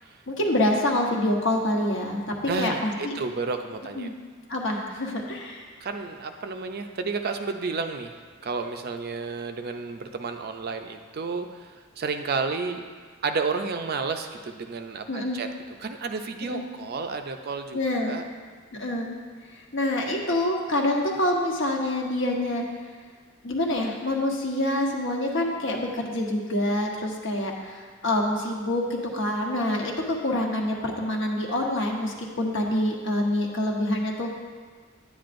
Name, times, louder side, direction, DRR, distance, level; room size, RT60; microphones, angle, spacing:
voice 1, 0.3-3.2 4.0-4.1 4.5-5.7 15.1-15.4 16.4-16.7 17.7-18.2 18.8-19.1 19.7-22.6 23.4-34.4, left 1 dB, 65° left, 0 dB, 1.1 m, -26 dB
voice 2, 2.5-4.1 5.8-8.1 8.4-12.9 13.2-15.5 15.8-18.2, right 4 dB, 50° right, 6 dB, 0.5 m, -31 dB
9.5 x 9.2 x 2.6 m, 1.6 s
head